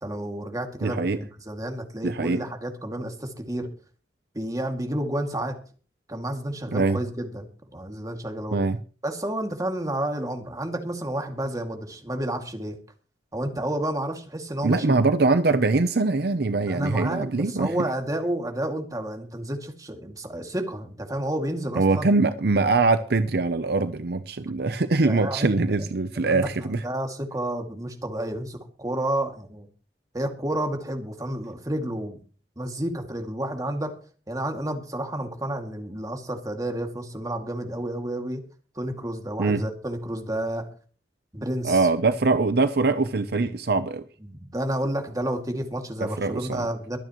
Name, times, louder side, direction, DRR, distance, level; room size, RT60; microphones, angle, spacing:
voice 1, 0.0-3.7 4.3-5.6 6.1-8.6 9.0-12.8 13.3-15.0 16.7-22.1 25.1-25.5 26.2-29.7 30.1-32.2 32.6-33.9 34.3-38.4 38.8-40.7 41.3-41.9 44.2-47.0, right 1 dB, 20° right, 2.3 m, -30 dB
voice 2, 0.8-1.2 2.0-2.4 6.7-7.0 8.5-8.8 14.6-17.8 21.8-26.8 39.4-39.6 41.6-44.0 46.2-46.6, right 3 dB, 60° right, 0.7 m, -23 dB
23.5 x 9.1 x 3.1 m
head